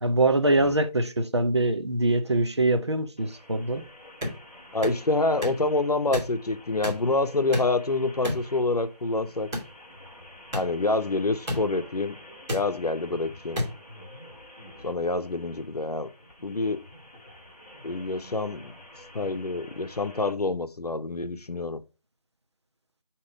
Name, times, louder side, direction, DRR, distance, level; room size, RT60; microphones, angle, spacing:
voice 1, 0.0-3.8, right 2 dB, 45° right, 0.6 m, -23 dB
sound 1, 3.2-20.3, left 1 dB, 15° left, 1.0 m, -49 dB
sound 2, 4.2-4.4 4.8-5.0 5.4-5.6 6.1-6.3 6.8-7.0 7.5-7.8 8.2-8.4 9.5-9.7 10.5-10.6 11.5-11.6 12.5-12.6 13.5-13.7, left 1 dB, 5° right, 1.2 m, -30 dB
voice 2, 4.7-9.5 10.5-12.2 12.5-13.6 14.8-16.1 16.4-16.8 17.8-18.7 19.1-21.8, left 3 dB, 70° left, 0.8 m, -27 dB
8.0 x 3.0 x 5.0 m
figure-of-eight pair, 165°, 21 cm